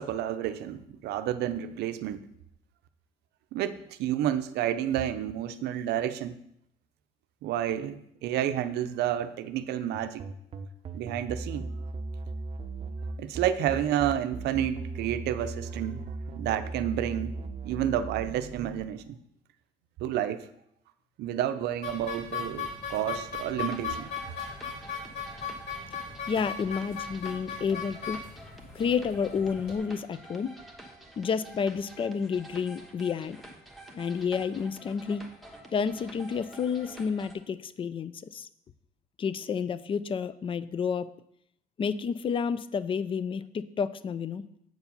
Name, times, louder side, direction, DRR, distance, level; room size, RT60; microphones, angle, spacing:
voice 1, 0.0-2.2 3.5-6.4 7.4-10.2 10.9-11.7 13.2-16.0 16.4-17.3 17.6-19.2 20.0-20.5 21.2-24.1, right 11 dB, 80° right, 11 dB, 0.6 m, -30 dB
sound 1, 9.9-18.8, right 3 dB, 35° right, 0.6 m, -37 dB
sound 2, 21.8-29.8, left 6 dB, 70° left, 2.9 m, -38 dB
sound 3, 23.7-37.4, right 1 dB, ahead, 1.2 m, -49 dB
voice 2, 26.3-28.2 28.7-30.5 31.2-33.4 34.0-35.2 35.7-38.5 39.2-41.1 41.8-44.4, left 6 dB, 30° left, 16 dB, 0.4 m, -30 dB
7.8 x 4.8 x 5.3 m, 0.75 s
cardioid pair, 110°, 17 cm